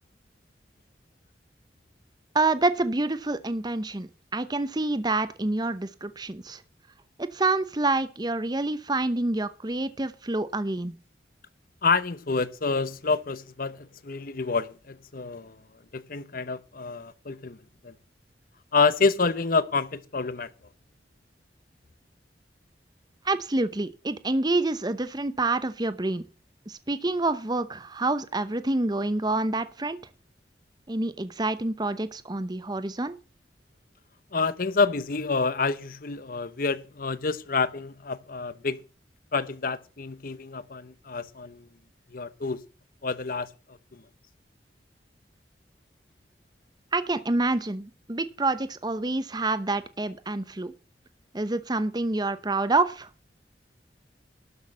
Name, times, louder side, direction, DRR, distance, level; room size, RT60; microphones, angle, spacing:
voice 1, 2.3-6.6 7.2-10.9 23.2-26.2 26.7-30.0 30.9-33.2 46.9-50.7 51.3-53.1, right 2 dB, 25° right, 0.8 m, -27 dB
voice 2, 11.8-15.6 15.9-17.6 17.8-17.9 18.7-20.5 34.3-38.8 39.3-41.6 42.1-42.6 43.0-44.0, left 4 dB, 50° left, 0.9 m, -28 dB
12.5 x 6.3 x 7.4 m
head